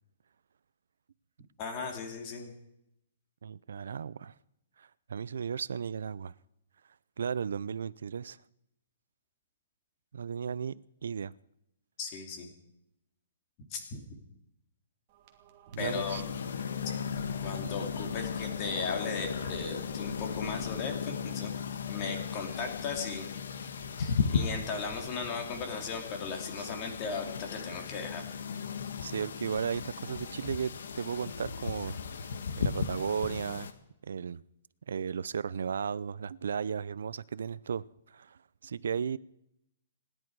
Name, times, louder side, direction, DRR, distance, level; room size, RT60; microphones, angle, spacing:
voice 1, 1.6-2.5 12.0-12.5 13.7-14.0 15.8-16.2 17.4-21.5 21.9-23.2 24.0-28.2, left 5 dB, 25° left, 2.7 m, -37 dB
voice 2, 3.4-4.3 4.8-6.3 7.2-8.4 10.1-11.3 15.7-16.2 26.6-26.7 29.0-32.0 32.6-33.7 34.0-34.4 34.9-39.2, right 7 dB, 85° right, 0.6 m, -35 dB
sound 1, 15.1-25.0, right 4 dB, 30° right, 1.7 m, -53 dB
sound 2, 15.8-33.7, left 6 dB, 80° left, 1.6 m, -36 dB
28.0 x 11.0 x 4.8 m
hypercardioid pair, 175°, 0 cm